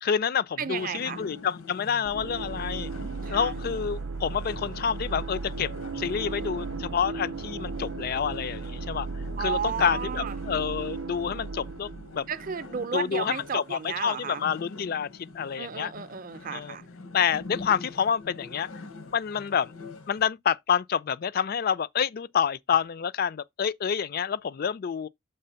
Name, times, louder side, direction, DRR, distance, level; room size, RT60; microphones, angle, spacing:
voice 1, 0.0-2.9 3.3-9.1 9.4-12.3 12.9-15.1 15.3-15.9 16.5-16.8 17.1-18.7 19.1-19.7 20.1-25.1, left 7 dB, 45° left, 0.3 m, -28 dB
voice 2, 0.6-1.2 3.2-3.5 9.4-10.3 12.3-14.4 15.6-16.8, right 6 dB, 40° right, 0.5 m, -33 dB
sound 1, 0.7-20.3, left 3 dB, 85° left, 0.9 m, -45 dB
sound 2, 2.0-12.8, right 3 dB, 85° right, 0.6 m, -36 dB
6.8 x 3.3 x 5.6 m
head